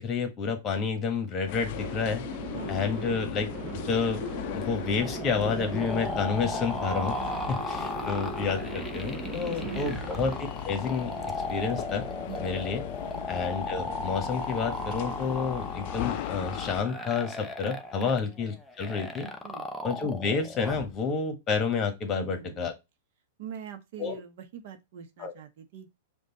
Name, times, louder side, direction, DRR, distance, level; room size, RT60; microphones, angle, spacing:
voice 1, 0.0-2.2 2.7-4.2 4.5-7.2 7.5-10.3 10.6-11.1 11.5-12.1 12.4-12.8 13.3-19.3 19.8-22.7 24.0-24.2 25.2-25.3, left 5 dB, 30° left, 1.3 m, -30 dB
sound 1, 1.5-16.8, left 14 dB, 55° left, 0.3 m, -38 dB
sound 2, 1.7-10.4, right 6 dB, 30° right, 0.8 m, -39 dB
sound 3, 5.0-20.9, left 2 dB, 5° left, 0.7 m, -36 dB
voice 2, 9.5-9.9 12.2-12.5 13.1-13.2 18.0-18.2 19.4-19.6 22.1-22.7 23.4-25.9, right 9 dB, 60° right, 0.9 m, -43 dB
5.2 x 2.4 x 3.9 m
hypercardioid pair, 120°, 0 cm